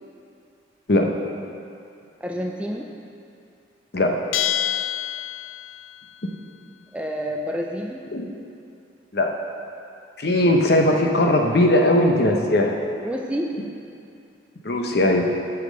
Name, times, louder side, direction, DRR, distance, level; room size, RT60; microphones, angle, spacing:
voice 1, 2.2-2.9 6.9-8.0 13.0-13.5, equal, 5° right, 1 dB, 0.4 m, -28 dB
Bell, 4.3-5.9, left 11 dB, 85° left, 0.3 m, -26 dB
voice 2, 10.2-12.8 14.6-15.3, left 1 dB, 55° left, 2 dB, 0.8 m, -19 dB
8.3 x 5.9 x 6.5 m, 2.6 s
head